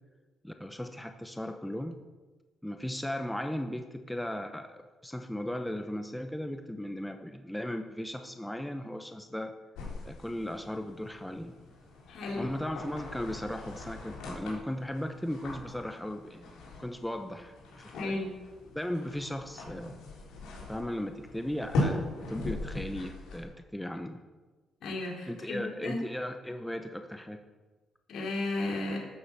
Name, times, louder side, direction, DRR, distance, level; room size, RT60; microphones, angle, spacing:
voice 1, 0.4-2.0 2.6-9.6 10.0-11.5 12.3-18.2 18.7-19.9 20.7-24.2 25.3-27.4, left 1 dB, 5° left, 6 dB, 0.9 m, -37 dB
sound 1, 9.7-23.4, left 2 dB, 90° left, 3.7 m, -39 dB
voice 2, 12.1-12.5 17.9-18.3 24.8-26.0 28.1-29.0, left 2 dB, 70° left, -2 dB, 3.7 m, -34 dB
12.5 x 7.4 x 7.0 m, 1.3 s
cardioid pair, 90°, 0 cm